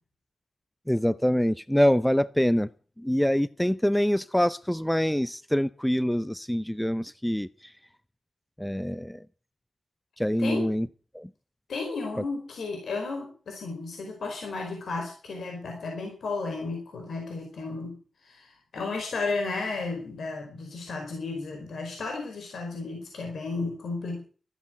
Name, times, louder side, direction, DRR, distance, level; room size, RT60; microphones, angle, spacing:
voice 1, 0.9-2.7 3.0-7.7 8.6-9.3 10.2-10.9 11.1-11.3, equal, 5° left, 0.7 m, -25 dB
voice 2, 11.7-24.2, left 3 dB, 80° left, 4.7 m, -33 dB
13.5 x 10.0 x 8.0 m
cardioid pair, 45°, 0 cm